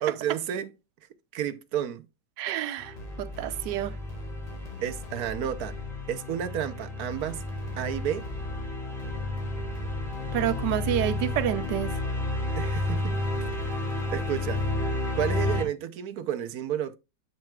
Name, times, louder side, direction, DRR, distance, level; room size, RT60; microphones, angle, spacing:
voice 1, 0.0-0.7 1.3-2.1 4.8-5.8 6.1-7.4 7.7-8.3 12.6-13.2 14.1-14.6 15.2-17.0, right 10 dB, 70° right, 1.2 m, -31 dB
voice 2, 2.4-3.9 10.3-12.0, right 12 dB, 85° right, 1.3 m, -29 dB
sound 1, 2.8-15.6, left 2 dB, ahead, 3.0 m, -32 dB
sound 2, 3.0-6.2 7.1-12.2 12.8-15.0, left 1 dB, 30° left, 0.7 m, -41 dB
7.7 x 7.5 x 2.3 m
omnidirectional pair, 1.8 m